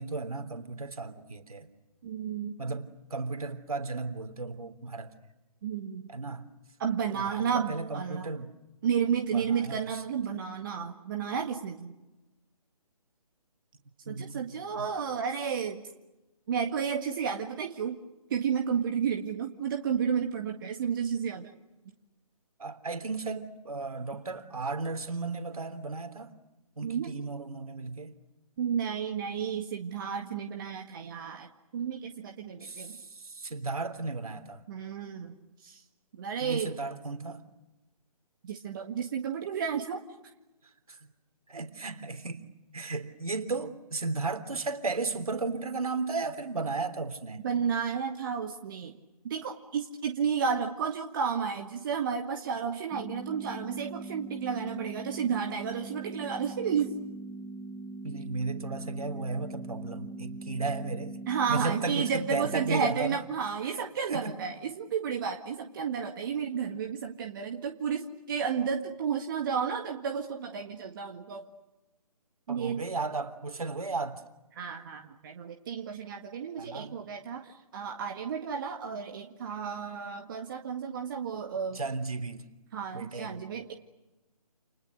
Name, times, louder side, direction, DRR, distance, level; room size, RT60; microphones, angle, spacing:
voice 1, 0.0-1.7 2.6-5.1 6.1-6.5 7.1-8.5 9.3-10.0 14.1-14.5 14.8-14.9 22.6-26.3 26.8-28.1 32.6-34.6 36.4-37.4 40.9-41.0 41.5-42.5 42.7-47.4 58.0-61.2 61.5-63.2 63.7-63.8 64.1-64.4 72.5-74.2 76.6-77.0 81.7-82.5 82.9-83.5, right 3 dB, 70° right, 8 dB, 3.4 m, -35 dB
voice 2, 2.0-2.5 5.6-6.1 6.8-8.3 8.8-11.9 14.1-15.8 16.5-18.0 18.3-21.5 26.8-27.1 28.6-31.5 31.7-33.0 34.7-35.4 35.6-35.8 36.2-36.8 38.4-40.0 47.4-49.0 49.2-56.9 61.3-71.4 72.5-72.8 74.5-81.8 82.7-83.7, right 7 dB, 35° right, 3 dB, 1.8 m, -32 dB
sound 1, 52.9-62.9, right 2 dB, ahead, 1.1 m, -41 dB
30.0 x 28.5 x 6.7 m, 1.0 s
figure-of-eight pair, 145°, 19 cm